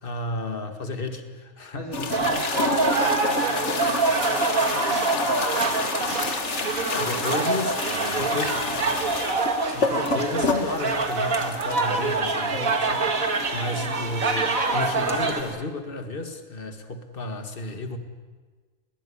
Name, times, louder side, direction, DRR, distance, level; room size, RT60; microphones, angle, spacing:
voice 1, 0.0-2.2 6.9-7.8 8.2-8.6 9.7-14.4 14.7-18.0, left 2 dB, 40° left, 7 dB, 2.1 m, -32 dB
voice 2, 1.7-7.6 7.8-8.4 13.7-14.1, right 1 dB, 40° right, -2 dB, 3.1 m, -40 dB
sound 1, 1.9-15.5, left 3 dB, 55° left, 2.0 m, -30 dB
sound 2, 2.1-15.4, right 3 dB, 80° right, 2.5 m, -25 dB
21.0 x 19.0 x 10.0 m, 1.4 s
omnidirectional pair, 1.4 m